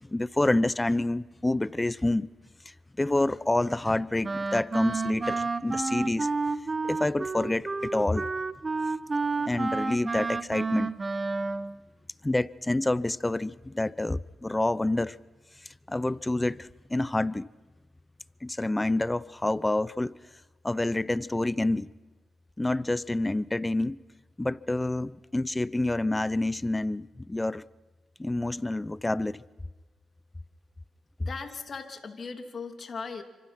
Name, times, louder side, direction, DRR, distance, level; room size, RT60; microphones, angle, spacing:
voice 1, 0.0-2.3 3.0-6.3 6.8-8.3 9.5-10.9 12.2-15.2 15.9-17.5 18.4-20.1 20.6-21.9 22.6-24.0 24.4-27.6 28.2-29.4, left 2 dB, 20° left, 0.7 m, -28 dB
Wind instrument woodwind instrument, 4.2-11.8, right 3 dB, 35° right, 1.1 m, -30 dB
voice 2, 31.2-33.2, left 4 dB, 50° left, 2.8 m, -38 dB
28.5 x 25.5 x 5.9 m
cardioid pair, 60°, 0 cm